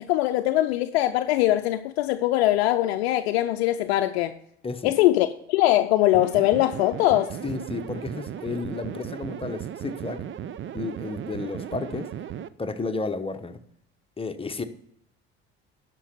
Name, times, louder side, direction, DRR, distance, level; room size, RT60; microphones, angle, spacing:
voice 1, 0.0-4.4 4.8-7.3, left 15 dB, 75° left, 0.5 m, -22 dB
sound 1, 6.1-12.5, right 9 dB, 40° right, 0.6 m, -36 dB
voice 2, 7.4-10.2 10.7-12.1 12.6-13.6 14.2-14.6, left 3 dB, 15° left, 1.1 m, -32 dB
12.0 x 5.4 x 6.7 m
hypercardioid pair, 65°, 31 cm